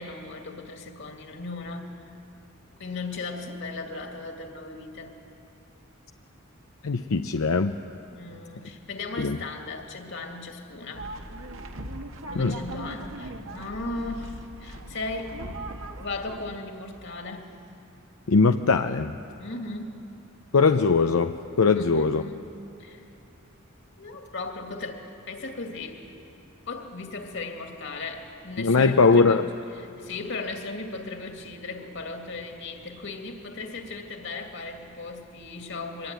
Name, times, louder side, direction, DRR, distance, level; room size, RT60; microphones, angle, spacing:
voice 1, 0.0-1.9 2.8-5.2 8.1-11.1 12.2-15.4 16.0-17.5 19.4-20.0 21.7-23.0 24.0-26.1 26.7-29.5 29.7-36.1, left 3 dB, 60° left, 4 dB, 2.5 m, -37 dB
voice 2, 6.8-7.7 9.2-9.4 12.4-12.6 18.3-19.1 20.5-22.2 28.6-29.4, left 4 dB, 85° left, 7 dB, 0.7 m, -21 dB
sound 1, 10.9-16.5, right 1 dB, 70° right, 1.7 m, -39 dB
24.5 x 21.0 x 9.1 m, 2.9 s
head